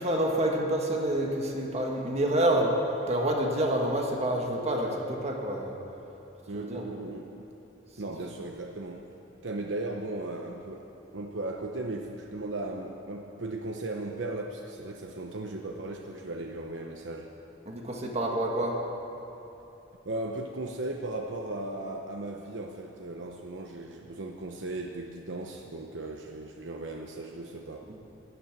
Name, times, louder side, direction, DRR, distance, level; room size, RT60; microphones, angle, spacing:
voice 1, 0.0-2.7 3.1-5.8 6.5-6.8 17.6-18.8 27.9-28.0, right 1 dB, 35° right, 0 dB, 1.6 m, -28 dB
voice 2, 6.5-7.3 8.0-9.1 9.4-17.3 20.0-27.9, right 2 dB, 85° right, 2 dB, 0.9 m, -37 dB
12.5 x 12.5 x 8.8 m, 3.0 s
head